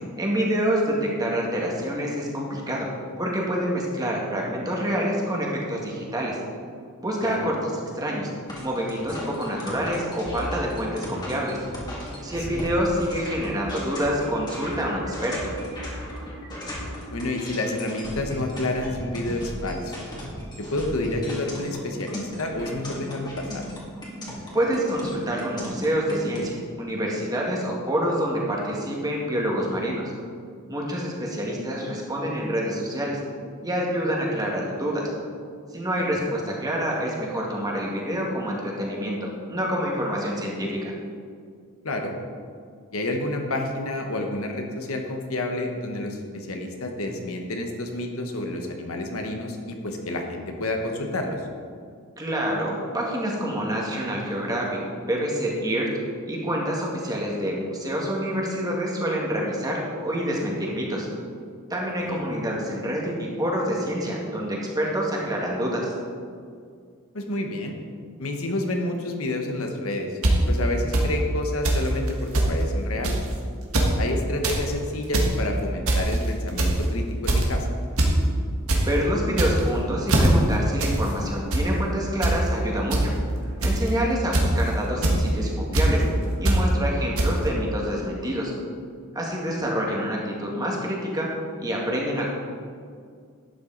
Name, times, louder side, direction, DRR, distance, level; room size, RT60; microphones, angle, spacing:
voice 1, 0.2-2.9 3.2-6.4 7.0-8.3 8.6-11.6 12.2-15.4 24.5-30.1 30.7-33.2 33.6-35.0 35.7-40.9 52.2-54.7 55.0-55.9 56.3-61.1 61.7-65.9 78.8-83.1 83.6-86.0 86.4-88.5 89.1-91.3 91.6-92.3, equal, 15° right, -3 dB, 1.9 m, -27 dB
sound 1, 8.5-26.4, equal, 20° left, 2.2 m, -36 dB
voice 2, 17.1-20.1 20.6-23.6 36.2-36.3 41.8-42.1 42.9-51.4 62.0-62.2 67.1-67.7 68.2-70.2 70.5-73.2 74.0-77.7 86.0-86.1 89.5-89.7, left 2 dB, 70° left, 3 dB, 1.2 m, -29 dB
sound 2, 70.2-70.3 70.9-71.0 71.6-71.8 72.1-72.2 72.3-72.5 73.0-73.3 73.6-73.9 74.3-74.6 75.0-75.3 75.9-76.2 76.6-76.8 77.3-77.5 78.0-78.1 78.4-78.8 79.3-79.7 80.1-80.3 80.8-81.0 81.3-81.6 82.2-82.4 82.9-83.0 83.6-83.9 84.3-84.6 85.0-85.2 85.7-85.9 86.5-86.6 87.2-87.3, right 2 dB, 70° right, 1.7 m, -21 dB
11.5 x 8.7 x 4.0 m, 2.1 s
head